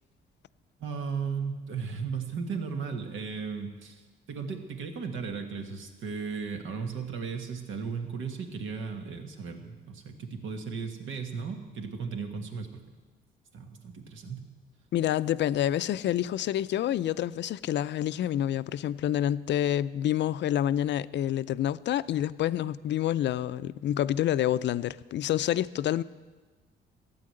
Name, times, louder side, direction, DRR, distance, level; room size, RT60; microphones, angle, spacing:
voice 1, 0.8-4.0 4.3-12.8 13.5-14.5, right 5 dB, 80° right, 1.6 m, -36 dB
voice 2, 14.9-26.0, left 11 dB, 65° left, 0.5 m, -28 dB
13.5 x 9.1 x 7.7 m
cardioid pair, 90°, 20 cm